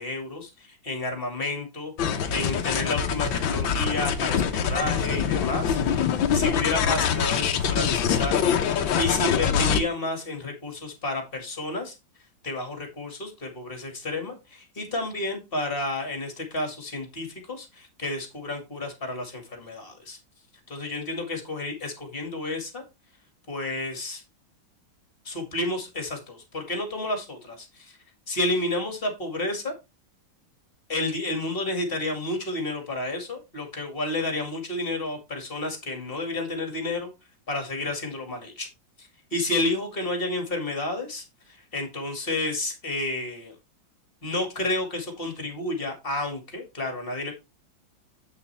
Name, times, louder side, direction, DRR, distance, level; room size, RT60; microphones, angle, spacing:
voice 1, 0.0-1.9 2.3-6.0 6.3-8.5 9.0-11.9 12.4-20.2 20.7-22.8 23.5-24.2 25.2-28.0 28.3-29.7 30.9-37.1 37.5-38.7 39.0-43.5 44.2-47.3, left 2 dB, 30° left, 3 dB, 2.4 m, -31 dB
sound 1, 2.0-9.8, left 7 dB, 85° left, 1.7 m, -24 dB
8.4 x 6.7 x 3.4 m, 0.25 s
omnidirectional pair, 2.1 m